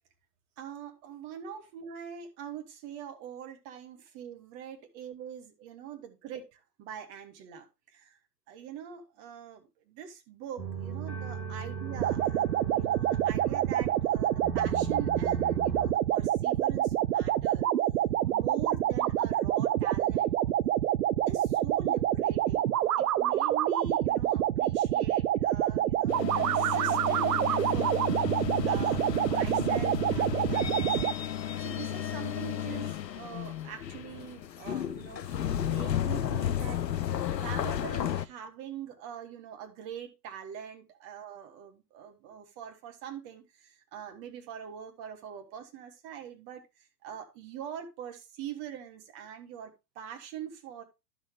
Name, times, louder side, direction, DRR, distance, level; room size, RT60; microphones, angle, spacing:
voice 1, 0.6-8.2 8.5-17.7 18.2-20.3 21.3-22.7 23.0-28.0 28.6-31.0 31.6-36.9 37.3-50.8, right 8 dB, 30° right, 1.5 m, -43 dB
sound 1, 10.6-15.9, right 4 dB, 90° right, 2.7 m, -38 dB
sound 2, 12.0-31.1, right 12 dB, 65° right, 0.5 m, -27 dB
sound 3, 26.1-38.2, left 10 dB, 80° left, 0.6 m, -33 dB
11.0 x 6.3 x 3.1 m
figure-of-eight pair, 110°, 50 cm